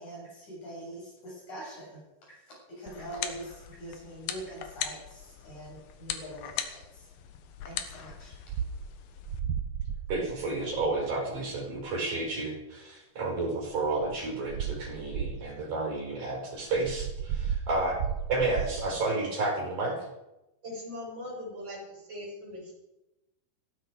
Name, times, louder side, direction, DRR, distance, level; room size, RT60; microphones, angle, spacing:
voice 1, 0.0-2.0 2.8-6.8 7.7-8.3, right 1 dB, 50° left, -4 dB, 8.9 m, -43 dB
sound 1, 2.9-9.4, left 9 dB, 80° left, 3.1 m, -40 dB
sound 2, 8.1-8.2 8.5-8.9 9.3-11.1 11.8-11.9 13.7-14.2 14.5-15.6 16.6-19.0, right 8 dB, 90° right, 1.5 m, -34 dB
voice 2, 10.1-18.0 18.3-20.0, right 2 dB, 55° right, 0 dB, 6.7 m, -31 dB
voice 3, 20.6-22.7, left 1 dB, 30° right, -4 dB, 7.9 m, -40 dB
17.5 x 15.0 x 5.2 m, 0.96 s
omnidirectional pair, 4.3 m